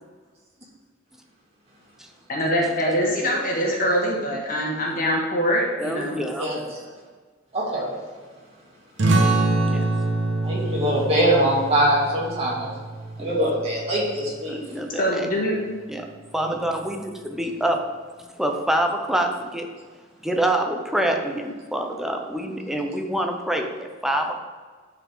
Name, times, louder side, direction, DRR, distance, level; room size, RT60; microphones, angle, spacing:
voice 1, 2.3-6.2 15.0-15.6 16.0-16.1 17.6-17.7, equal, 45° left, -2 dB, 1.8 m, -24 dB
voice 2, 5.8-6.5 9.6-9.9 13.2-13.4 14.5-15.3 15.9-16.1 16.3-17.9 18.4-19.7 20.2-24.4, right 1 dB, ahead, 3 dB, 0.6 m, -26 dB
voice 3, 6.4-6.8 7.5-8.0 10.4-12.7 13.2-14.6, right 1 dB, 30° right, -5 dB, 2.5 m, -23 dB
sound 1, 9.0-14.2, right 2 dB, 65° right, 1.0 m, -25 dB
10.0 x 4.9 x 3.7 m, 1.5 s
head